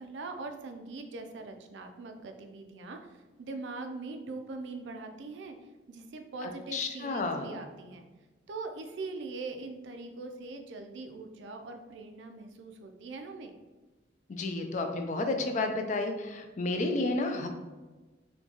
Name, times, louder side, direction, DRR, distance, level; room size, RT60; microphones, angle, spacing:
voice 1, 0.0-5.6 5.9-8.1 8.5-13.5, right 3 dB, 80° right, 6 dB, 0.4 m, -42 dB
voice 2, 6.4-7.6 14.3-17.5, left 2 dB, 40° left, 5 dB, 0.4 m, -31 dB
4.3 x 2.3 x 2.8 m, 1.2 s
head